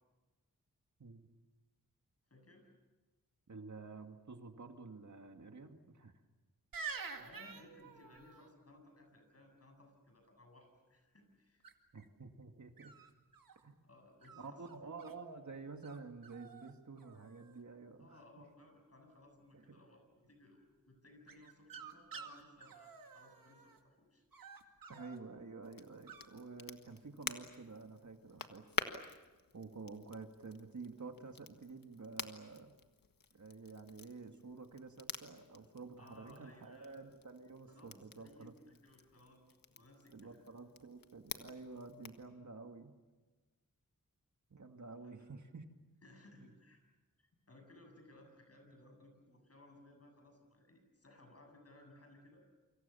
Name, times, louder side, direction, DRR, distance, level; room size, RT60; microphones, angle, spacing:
voice 1, 2.3-2.7 7.2-11.6 13.8-14.9 18.0-24.3 36.0-37.1 37.7-40.4 45.0-45.3 46.0-46.8 47.2-52.4, left 1 dB, 45° left, 4 dB, 7.8 m, -61 dB
voice 2, 3.5-6.1 11.9-12.9 13.6-13.7 14.4-18.2 19.5-19.8 24.9-28.7 29.5-32.7 33.3-38.5 40.1-42.9 44.5-45.7 46.4-46.5, right 4 dB, 60° right, 5 dB, 2.2 m, -50 dB
sound 1, 6.7-8.5 11.6-12.0 12.8-13.6 14.2-15.1 15.8-16.0 16.2-16.7 17.0-17.6 21.3-23.8 24.3-25.2 26.1-26.3, right 5 dB, 85° right, 2.2 m, -49 dB
Crackle, 25.6-42.3, left 5 dB, 85° left, 1.6 m, -49 dB
29.0 x 26.0 x 7.1 m, 1.2 s
wide cardioid pair, 85°, 33 cm